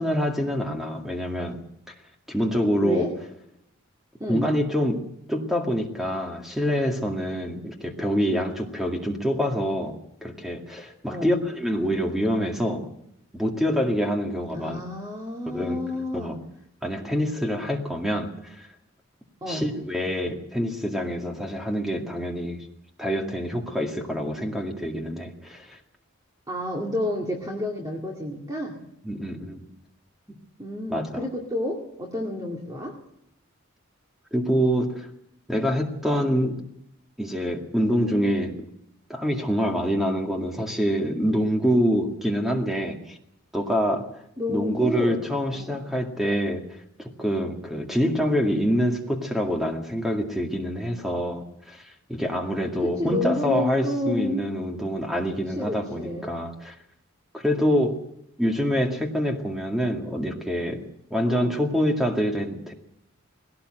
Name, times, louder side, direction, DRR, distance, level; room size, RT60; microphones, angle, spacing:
voice 1, 0.0-1.6 2.3-3.1 4.3-5.0 5.3-10.0 10.2-12.9 13.3-14.8 15.5-15.8 16.1-16.4 16.8-18.7 19.4-22.6 23.0-25.8 29.0-29.6 30.9-31.2 34.3-35.1 35.5-36.6 37.2-38.6 39.1-43.2 43.5-44.1 44.5-56.7 57.3-58.0 58.4-60.8 61.1-62.7, equal, ahead, 1 dB, 2.1 m, -26 dB
voice 2, 2.8-3.1 4.2-4.5 11.1-11.3 14.5-16.4 19.4-19.6 26.5-28.8 30.6-33.0 44.4-45.2 45.5-45.8 52.8-54.5 55.5-56.3 61.2-61.6, left 1 dB, 20° right, -1 dB, 2.3 m, -30 dB
20.5 x 17.5 x 7.8 m, 0.76 s
head